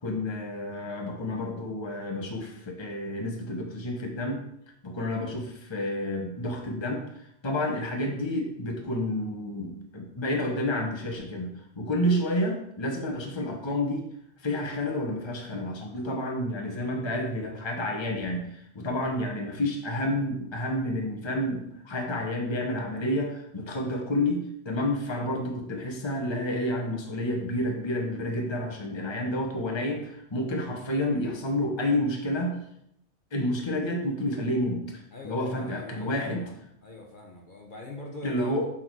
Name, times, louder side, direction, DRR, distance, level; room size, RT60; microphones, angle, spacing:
voice 1, 0.0-4.4 4.8-14.1 14.4-32.6 33.3-36.4 38.2-38.7, left 1 dB, 25° left, 1 dB, 1.1 m, -30 dB
voice 2, 35.1-38.5, left 2 dB, 45° left, 0 dB, 1.2 m, -43 dB
6.3 x 6.1 x 4.6 m, 0.74 s
omnidirectional pair, 1.2 m